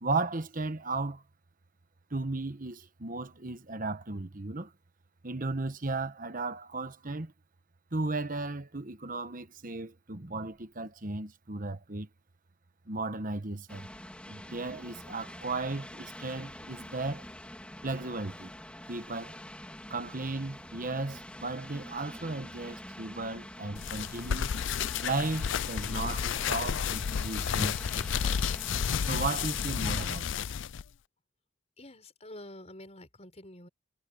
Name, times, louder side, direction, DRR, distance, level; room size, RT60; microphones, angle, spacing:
voice 1, 0.0-1.2 2.1-4.7 5.2-7.3 7.9-12.1 12.9-13.9 14.3-17.3 17.8-18.5 18.9-19.4 19.9-24.5 25.0-28.4 29.1-30.3, right 3 dB, 40° right, 1.2 m, -35 dB
sound 1, 13.7-30.1, left 1 dB, 5° left, 3.2 m, -46 dB
sound 2, 23.8-30.8, left 7 dB, 60° left, 0.4 m, -31 dB
voice 2, 31.8-33.7, left 1 dB, 30° left, 7.0 m, -48 dB
head